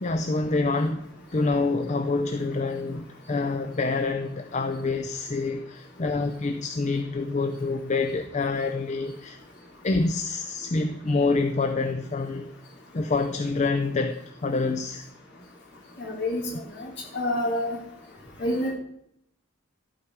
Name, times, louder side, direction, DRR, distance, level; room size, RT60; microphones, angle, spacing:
voice 1, 0.0-1.1 1.3-9.4 9.8-12.5 12.9-15.1, left 3 dB, 35° left, 7 dB, 0.5 m, -27 dB
voice 2, 16.0-16.5 16.8-17.8 18.4-18.7, left 1 dB, 55° left, -2 dB, 3.5 m, -28 dB
12.0 x 8.8 x 4.7 m, 0.76 s
head